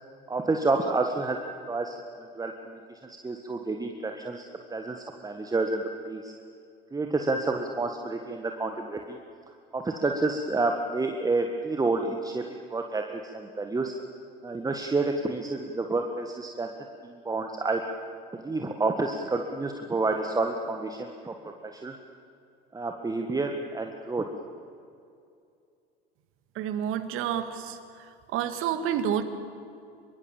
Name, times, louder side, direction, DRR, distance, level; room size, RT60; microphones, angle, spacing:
voice 1, 0.3-1.4 1.7-2.0 2.3-6.3 6.9-9.2 9.7-12.4 12.7-13.9 14.4-16.7 17.0-17.8 18.3-21.9 22.7-24.3, right 3 dB, 10° right, 4 dB, 1.7 m, -29 dB
voice 2, 26.6-27.8 28.3-29.2, right 9 dB, 45° right, 9 dB, 2.1 m, -29 dB
25.0 x 23.5 x 7.3 m, 2.5 s
figure-of-eight pair, 75°, 29 cm